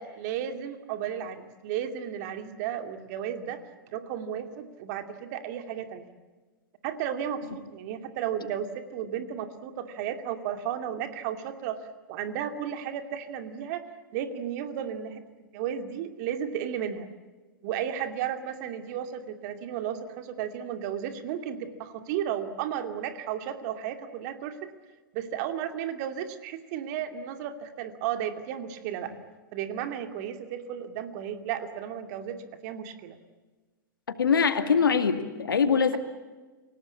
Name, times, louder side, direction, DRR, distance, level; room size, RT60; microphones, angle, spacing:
voice 1, 0.0-3.6 3.9-6.1 6.8-13.8 14.1-15.2 15.5-17.1 17.6-24.7 25.1-29.1 29.5-33.2, right 9 dB, 50° right, 8 dB, 2.5 m, -34 dB
voice 2, 34.2-36.0, left 6 dB, 80° left, 8 dB, 2.3 m, -23 dB
28.5 x 18.0 x 8.5 m, 1.3 s
hypercardioid pair, 105°, 11 cm